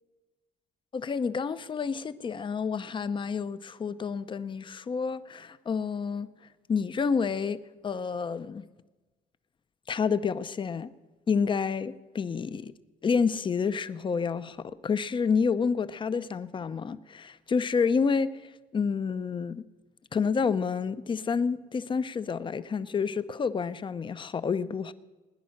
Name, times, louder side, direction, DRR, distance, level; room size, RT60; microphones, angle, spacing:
voice 1, 0.9-6.3 6.7-7.6 7.8-8.6 9.9-10.9 11.3-12.7 13.0-19.6 20.1-24.9, left 5 dB, 30° left, 0.7 m, -29 dB
20.5 x 10.0 x 6.5 m
cardioid pair, 110°, 17 cm